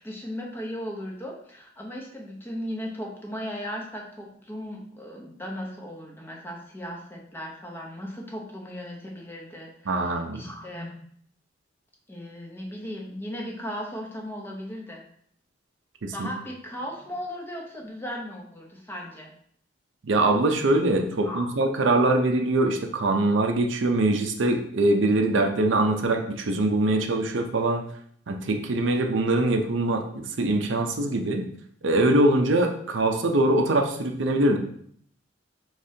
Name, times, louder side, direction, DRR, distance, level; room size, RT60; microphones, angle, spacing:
voice 1, 0.0-11.0 12.1-15.0 16.1-19.3 21.2-21.5, equal, 10° left, -1 dB, 0.7 m, -37 dB
voice 2, 9.9-10.4 16.0-16.3 20.1-27.8 28.3-31.4 31.8-34.6, right 2 dB, 80° right, 4 dB, 0.6 m, -23 dB
5.0 x 3.2 x 2.7 m, 0.63 s
head